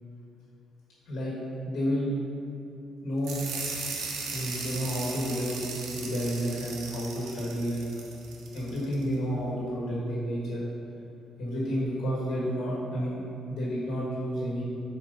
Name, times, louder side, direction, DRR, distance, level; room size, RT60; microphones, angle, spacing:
voice 1, 1.6-2.1 3.0-3.4 4.3-5.6 5.9-8.0 8.5-10.6 11.4-13.2 13.5-14.6, equal, 70° left, -6 dB, 1.4 m, -30 dB
sound 1, 3.2-9.0, right 4 dB, 90° right, 0.9 m, -37 dB
7.8 x 4.6 x 3.9 m, 2.7 s
cardioid pair, 180°, 0 cm